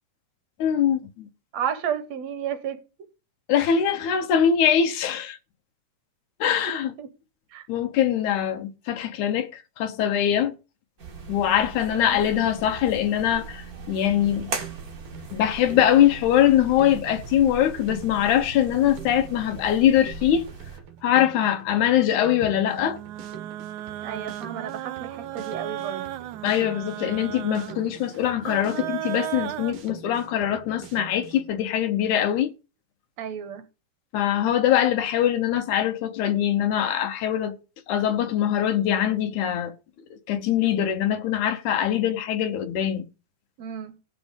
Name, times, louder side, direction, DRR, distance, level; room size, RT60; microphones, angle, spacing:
voice 1, 0.6-1.3 3.5-5.4 6.4-6.9 7.7-10.5 11.3-14.5 15.3-20.5 21.0-23.0 26.4-32.5 34.1-37.6 37.9-39.7 40.1-43.1, left 10 dB, 80° left, 2.5 m, -22 dB
voice 2, 1.5-2.8 7.0-7.1 7.5-7.6 11.9-12.2 24.0-26.1 33.2-33.6 43.6-43.9, right 8 dB, 65° right, 2.3 m, -32 dB
sound 1, 11.0-20.8, right 4 dB, 35° right, 2.0 m, -39 dB
Drum kit, 14.1-31.5, right 7 dB, 50° right, 2.1 m, -45 dB
sound 2, 22.7-29.7, right 13 dB, 80° right, 2.1 m, -35 dB
17.0 x 6.2 x 5.2 m
omnidirectional pair, 3.4 m